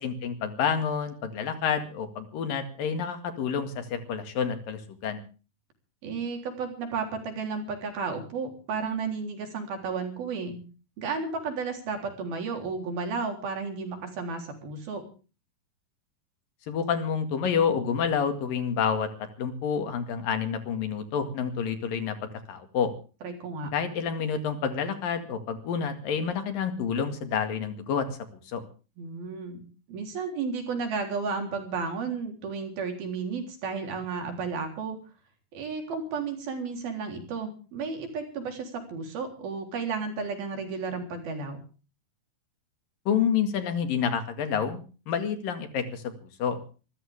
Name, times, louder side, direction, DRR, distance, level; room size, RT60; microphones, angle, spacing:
voice 1, 0.0-5.2 16.7-19.1 19.4-22.2 22.5-22.9 23.7-28.1 28.5-28.6 43.1-44.8 45.1-46.6, left 7 dB, 70° left, 8 dB, 3.7 m, -28 dB
voice 2, 6.0-10.6 11.0-15.1 23.2-23.7 29.0-29.6 29.9-35.0 35.5-41.6, right 5 dB, 80° right, 4 dB, 5.5 m, -33 dB
25.5 x 14.0 x 3.6 m, 0.36 s
omnidirectional pair, 4.2 m